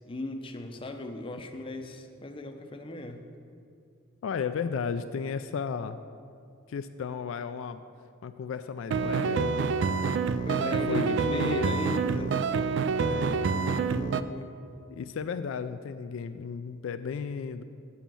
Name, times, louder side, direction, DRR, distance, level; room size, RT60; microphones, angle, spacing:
voice 1, 0.1-3.2 10.5-12.4 13.0-13.3 13.6-14.5, left 1 dB, 25° left, 5 dB, 0.6 m, -37 dB
voice 2, 4.2-6.0 6.7-7.8 8.2-9.7 10.6-11.8 13.0-13.5 14.9-17.6, left 6 dB, 65° left, 10 dB, 0.3 m, -34 dB
sound 1, 8.9-14.2, right 5 dB, 55° right, 0.3 m, -27 dB
7.1 x 7.0 x 7.5 m, 2.5 s
head